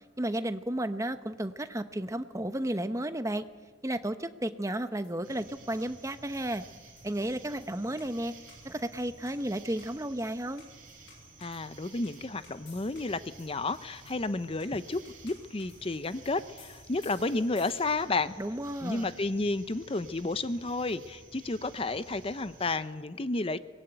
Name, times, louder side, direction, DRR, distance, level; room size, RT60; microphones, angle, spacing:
voice 1, 0.2-3.4 3.8-6.6 7.0-8.3 8.6-10.7 18.4-19.1, right 1 dB, 15° right, 10 dB, 0.9 m, -33 dB
sound 1, 4.7-18.2, left 4 dB, 70° left, 6.9 m, -59 dB
sound 2, 5.2-22.8, right 3 dB, 45° right, 4.6 m, -53 dB
voice 2, 11.4-18.4 18.8-23.6, left 3 dB, 30° left, 13 dB, 0.6 m, -32 dB
23.5 x 19.5 x 9.0 m, 1.5 s
head